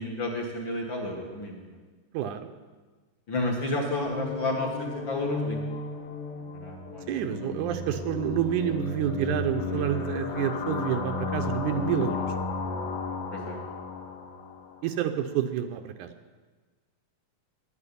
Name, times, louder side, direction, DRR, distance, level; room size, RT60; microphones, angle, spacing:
voice 1, 0.0-1.8 3.3-5.6 6.5-7.6 13.3-13.6, left 2 dB, 45° left, 0 dB, 2.2 m, -31 dB
voice 2, 2.1-2.5 7.1-12.3 14.8-16.1, right 10 dB, 75° right, 8 dB, 2.2 m, -29 dB
sound 1, 4.0-14.8, left 4 dB, 75° left, 3.4 m, -34 dB
11.0 x 9.2 x 9.9 m, 1.4 s
omnidirectional pair, 3.7 m